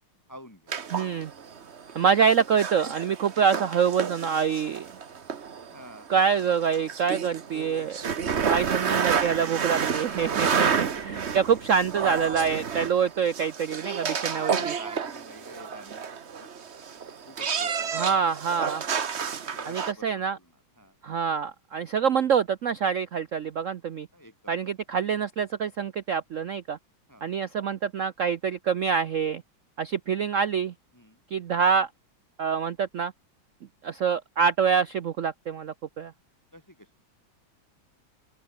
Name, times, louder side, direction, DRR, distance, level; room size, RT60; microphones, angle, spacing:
voice 1, 0.3-0.6 5.7-6.1 14.3-16.0 16.4-16.5 17.3-18.3 19.5-20.9 24.1-24.7 27.1-27.3 30.9-31.2 36.5-36.9, equal, 10° left, 2.6 m, -48 dB
sound 1, 0.7-19.9, right 6 dB, 40° right, 1.2 m, -30 dB
voice 2, 0.9-1.3 1.9-4.9 6.1-8.0 8.4-14.7 17.9-18.9 19.7-20.4 21.0-24.1 24.5-26.8 27.2-29.4 29.8-30.7 31.3-31.9 32.4-33.1 33.8-36.1, right 7 dB, 75° right, 0.7 m, -26 dB
open air
omnidirectional pair, 2.3 m